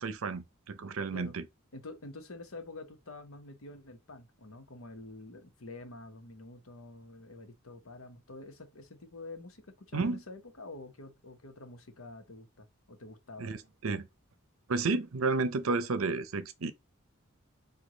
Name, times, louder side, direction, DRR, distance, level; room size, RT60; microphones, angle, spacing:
voice 1, 0.0-1.5 9.9-10.2 13.4-14.1 14.7-16.7, right 3 dB, 80° right, 0.6 m, -32 dB
voice 2, 1.7-13.6, left 2 dB, 80° left, 1.0 m, -47 dB
4.8 x 2.4 x 3.9 m
head